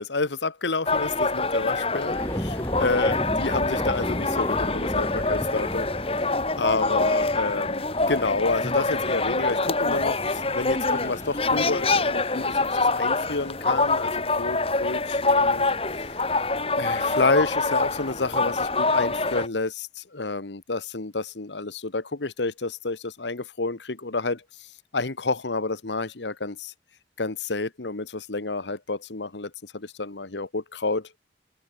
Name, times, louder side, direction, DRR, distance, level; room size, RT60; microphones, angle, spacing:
voice 1, 0.0-6.3 6.6-15.7 15.9-16.2 16.7-26.7 27.2-31.1, left 3 dB, 90° left, 1.4 m, -29 dB
sound 1, 0.9-19.5, left 3 dB, 35° left, 3.6 m, -25 dB
sound 2, 2.1-13.6, equal, 15° left, 1.8 m, -35 dB
head